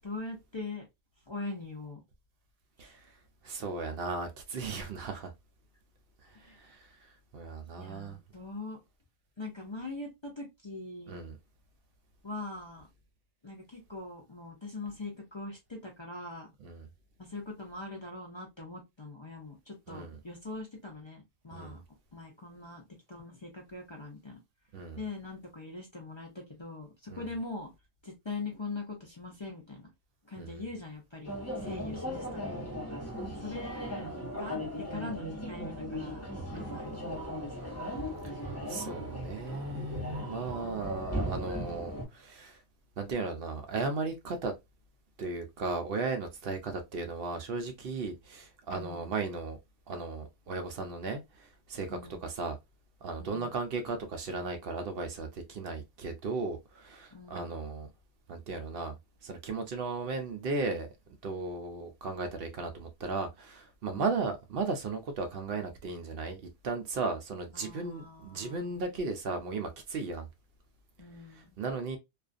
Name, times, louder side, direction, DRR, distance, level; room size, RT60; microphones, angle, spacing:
voice 1, 0.0-0.9 1.3-2.0 2.8-2.9 6.3-6.6 7.8-8.8 9.4-11.2 12.2-12.9 13.4-16.5 17.2-21.8 22.1-24.4 25.0-27.7 28.0-29.9 30.2-32.6 33.4-34.1 34.4-37.7 48.7-49.2 51.9-52.3 53.2-53.5 57.1-57.5 63.9-64.2 67.5-68.8 71.0-71.6, left 3 dB, 35° left, 0.5 m, -42 dB
voice 2, 2.8-3.1 3.4-5.3 6.2-7.0 7.3-8.2 11.1-11.4 16.6-16.9 19.9-20.2 21.5-21.8 24.7-25.0 27.1-27.3 30.4-30.6 31.6-31.9 33.1-33.3 36.5-36.8 38.2-38.3 38.7-42.6 43.0-44.5 45.2-49.6 49.9-52.6 53.0-57.9 58.3-58.9 59.2-60.9 61.2-66.4 66.6-70.3 71.3-72.0, right 3 dB, 65° right, 0.7 m, -36 dB
sound 1, 31.2-42.1, equal, 15° left, 1.0 m, -37 dB
2.4 x 2.4 x 2.4 m
omnidirectional pair, 1.1 m